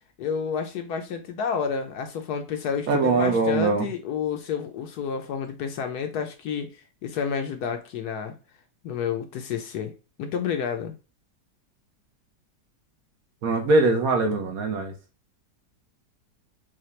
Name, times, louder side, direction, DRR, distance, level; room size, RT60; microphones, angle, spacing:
voice 1, 0.2-6.7 7.0-8.3 8.8-9.9 10.2-10.9, left 7 dB, 70° left, 1.1 m, -30 dB
voice 2, 2.9-3.9 13.4-14.9, right 3 dB, 60° right, 1.1 m, -22 dB
5.7 x 2.3 x 3.1 m
omnidirectional pair, 1.9 m